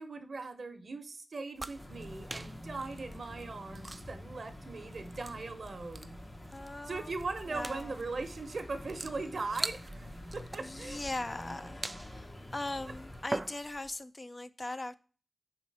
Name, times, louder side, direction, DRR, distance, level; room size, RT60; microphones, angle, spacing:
voice 1, 0.0-6.2 6.8-11.0, right 3 dB, 80° right, 8 dB, 0.9 m, -40 dB
sound 1, 1.5-14.0, right 2 dB, 40° right, 0.3 m, -45 dB
sound 2, 1.7-13.2, left 1 dB, 65° left, 2.0 m, -47 dB
voice 2, 6.5-7.1 7.5-8.0 10.6-15.0, left 2 dB, 40° left, 11 dB, 0.5 m, -40 dB
4.7 x 4.4 x 5.3 m, 0.38 s
cardioid pair, 45°, 0 cm